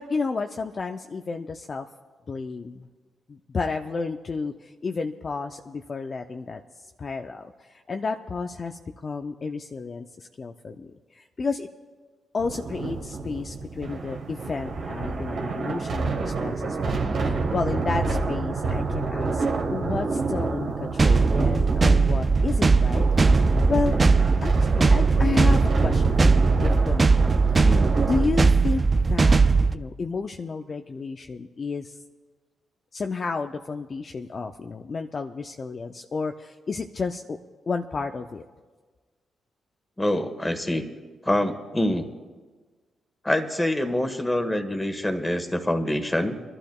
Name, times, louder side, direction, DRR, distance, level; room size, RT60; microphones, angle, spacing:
voice 1, 0.0-1.9 2.3-2.9 3.3-6.6 7.0-11.7 12.3-19.4 19.7-23.3 23.7-24.0 24.4-27.6 28.0-28.8 29.1-29.4 29.7-32.0 32.9-37.4 37.7-38.4, left 4 dB, 50° left, 5 dB, 0.6 m, -31 dB
sound 1, 12.4-28.3, right 3 dB, 70° right, 1.5 m, -28 dB
sound 2, 21.0-29.7, right 4 dB, 40° right, 0.5 m, -19 dB
voice 2, 27.6-28.0 40.0-40.8 41.2-42.1 43.2-46.4, left 1 dB, 15° left, 7 dB, 1.5 m, -25 dB
27.0 x 12.0 x 2.4 m, 1.4 s
supercardioid pair, 50°, 0 cm